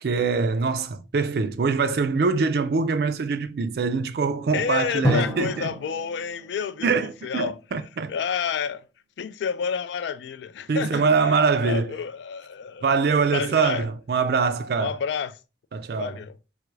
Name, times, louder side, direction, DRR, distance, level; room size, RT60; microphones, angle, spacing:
voice 1, 0.0-5.7 6.8-8.1 10.7-11.9 12.8-15.0 15.7-16.1, right 4 dB, 55° right, 0.4 m, -23 dB
voice 2, 4.5-6.9 7.2-7.6 8.1-8.8 9.2-11.4 11.6-12.9 13.3-13.9 14.8-15.4 15.9-16.4, left 6 dB, 70° left, 0.3 m, -29 dB
Drum, 5.0-7.7, equal, 15° left, 0.8 m, -30 dB
3.3 x 2.3 x 3.1 m
head